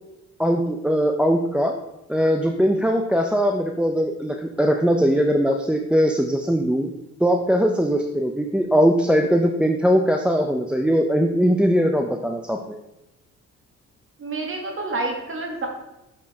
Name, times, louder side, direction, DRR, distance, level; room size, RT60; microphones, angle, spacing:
voice 1, 0.4-1.8 2.1-6.9 7.2-12.8, equal, 5° right, 3 dB, 0.4 m, -20 dB
voice 2, 14.2-15.7, right 2 dB, 45° right, 1 dB, 1.3 m, -28 dB
6.5 x 5.2 x 3.4 m, 0.94 s
cardioid pair, 90°, 30 cm